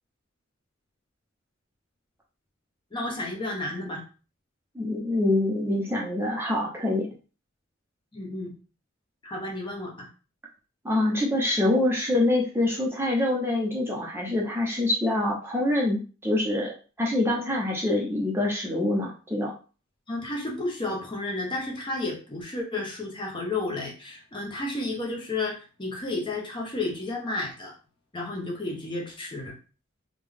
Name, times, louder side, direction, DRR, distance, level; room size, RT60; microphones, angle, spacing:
voice 1, 2.9-4.0 8.1-8.5 9.2-10.1 20.1-27.7 28.1-29.6, left 2 dB, 25° left, -1 dB, 0.8 m, -32 dB
voice 2, 4.7-7.1 10.8-19.5, left 1 dB, 10° right, -3 dB, 0.7 m, -25 dB
3.6 x 2.3 x 3.5 m, 0.35 s
head